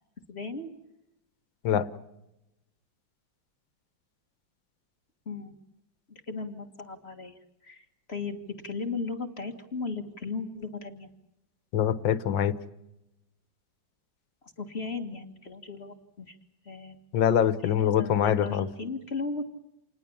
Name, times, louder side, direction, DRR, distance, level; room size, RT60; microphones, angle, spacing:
voice 1, 0.3-0.7 5.3-5.6 6.1-11.1 14.4-16.4 16.6-17.0 17.6-19.4, left 4 dB, 35° left, 6 dB, 1.9 m, -36 dB
voice 2, 11.7-12.5 17.1-18.7, left 9 dB, 80° left, 14 dB, 1.8 m, -24 dB
28.5 x 20.0 x 7.1 m, 0.88 s
omnidirectional pair, 2.0 m